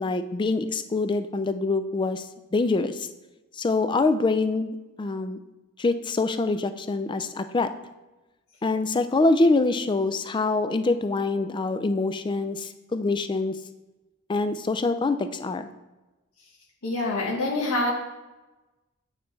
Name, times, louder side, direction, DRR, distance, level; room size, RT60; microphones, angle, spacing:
voice 1, 0.0-2.3 2.5-3.1 3.5-5.4 5.8-7.7 8.6-13.5 14.3-15.7, left 3 dB, 20° left, 10 dB, 0.3 m, -25 dB
voice 2, 16.8-17.9, left 2 dB, 80° left, -4 dB, 1.1 m, -25 dB
8.9 x 4.0 x 3.2 m, 1.1 s
head